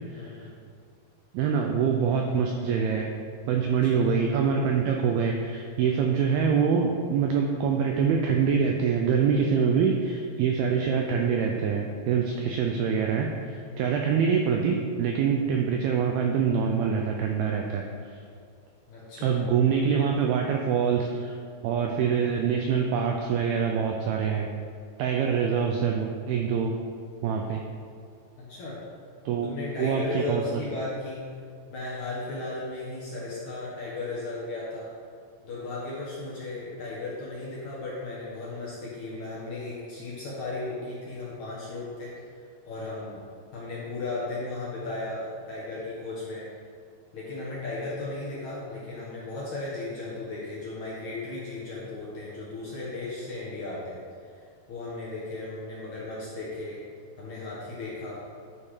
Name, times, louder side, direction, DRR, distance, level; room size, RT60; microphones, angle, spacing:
voice 1, 0.2-0.5 2.1-2.2 3.9-4.1 5.9-6.0 13.7-14.0 18.9-19.4 28.4-28.8 29.4-31.3 31.7-34.9 35.4-42.1 42.7-43.2 43.5-46.5 47.1-54.0 54.7-56.8 57.2-58.2, left 2 dB, 60° left, -7 dB, 2.1 m, -35 dB
voice 2, 1.3-3.1 3.5-17.8 19.2-21.4 21.6-24.5 25.0-26.7 27.2-27.6 29.3-30.4, right 6 dB, 85° right, 2 dB, 2.2 m, -25 dB
10.5 x 5.6 x 5.0 m, 2.2 s
omnidirectional pair, 5.1 m